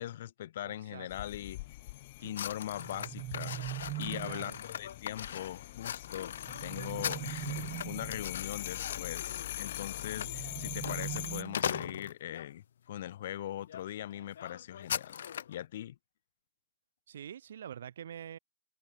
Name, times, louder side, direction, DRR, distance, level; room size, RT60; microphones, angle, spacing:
voice 1, 0.0-1.6 2.2-15.2 15.5-16.0, left 12 dB, 50° left, 1.4 m, -41 dB
voice 2, 0.6-1.1 2.2-2.3 4.2-4.6 17.1-18.4, right 9 dB, 80° right, 3.2 m, -45 dB
sound 1, 1.1-11.4, left 19 dB, 35° left, 0.9 m, -43 dB
sound 2, 2.3-12.5 13.1-13.3 13.7-13.8 14.1-15.6, left 9 dB, 85° left, 1.8 m, -40 dB
sound 3, 2.7-4.6 6.4-8.3 10.1-12.1, right 18 dB, 20° right, 0.3 m, -41 dB
supercardioid pair, 180°, 0 cm